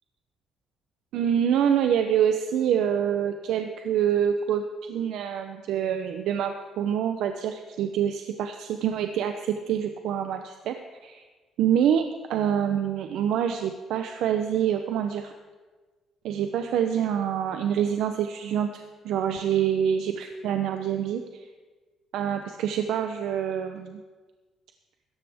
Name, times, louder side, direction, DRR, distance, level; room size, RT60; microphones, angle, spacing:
voice 1, 1.1-10.8 11.0-11.2 11.6-15.3 16.2-21.2 22.1-24.0, right 9 dB, 75° right, 6 dB, 0.7 m, -26 dB
16.5 x 13.5 x 3.6 m, 1.3 s
cardioid pair, 140°, 0 cm